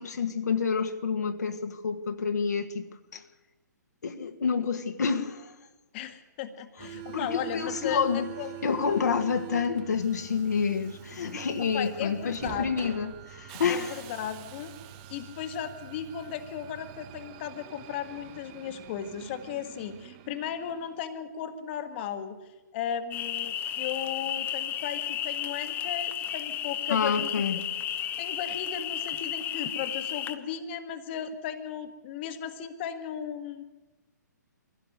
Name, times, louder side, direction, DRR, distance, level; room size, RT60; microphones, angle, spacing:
voice 1, 0.0-3.2 4.0-5.5 6.8-8.3 8.6-14.0 26.9-27.6, left 6 dB, 65° left, 6 dB, 1.6 m, -28 dB
voice 2, 5.9-8.5 11.7-12.9 13.7-14.7 15.1-22.4 22.7-27.3 28.2-33.6, left 9 dB, 35° left, 8 dB, 1.6 m, -36 dB
Subway metro underground, 6.8-21.1, right 11 dB, 30° right, 1.0 m, -45 dB
sound 1, 23.1-30.4, left 10 dB, 20° left, 1.0 m, -33 dB
23.0 x 16.0 x 7.9 m, 1.1 s
figure-of-eight pair, 125°, 10 cm